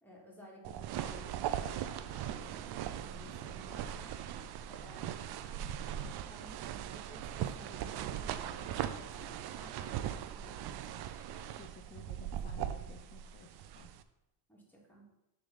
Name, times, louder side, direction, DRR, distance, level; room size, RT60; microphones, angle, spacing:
voice 1, 0.0-4.2 4.7-11.2 14.5-15.1, equal, 5° left, -3 dB, 1.8 m, -55 dB
sound 1, 0.6-14.0, right 10 dB, 55° right, 0.5 m, -40 dB
voice 2, 11.6-13.5 13.7-13.9, left 6 dB, 25° left, 3 dB, 0.5 m, -54 dB
6.8 x 3.4 x 5.4 m, 0.94 s
cardioid pair, 120°, 47 cm